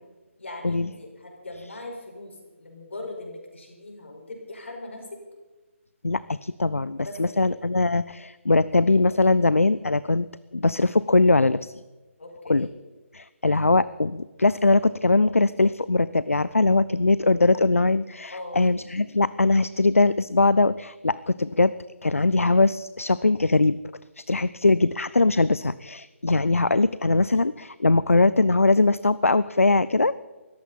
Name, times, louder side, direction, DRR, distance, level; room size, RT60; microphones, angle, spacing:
voice 1, 0.4-5.1 7.0-7.4 12.2-12.7 18.3-18.7, left 2 dB, 60° left, 1 dB, 5.1 m, -40 dB
voice 2, 6.0-10.3 10.5-11.8 12.5-12.7 13.1-21.7 22.0-23.8 24.2-30.2, left 3 dB, 80° left, 17 dB, 0.4 m, -21 dB
20.0 x 14.5 x 4.2 m, 1.2 s
figure-of-eight pair, 145°, 7 cm